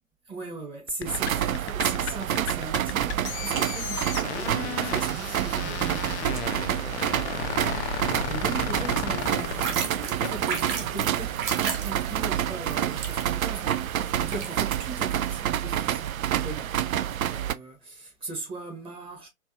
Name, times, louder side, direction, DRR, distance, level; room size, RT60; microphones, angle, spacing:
voice 1, 0.3-9.9 10.2-19.3, right 3 dB, 15° right, 1.0 m, -39 dB
sound 1, 0.9-10.6, left 9 dB, 55° left, 0.6 m, -34 dB
sound 2, 1.0-17.5, right 10 dB, 75° right, 0.5 m, -28 dB
sound 3, 9.2-15.3, right 6 dB, 35° right, 1.0 m, -35 dB
4.4 x 2.4 x 2.7 m
figure-of-eight pair, 120°, 42 cm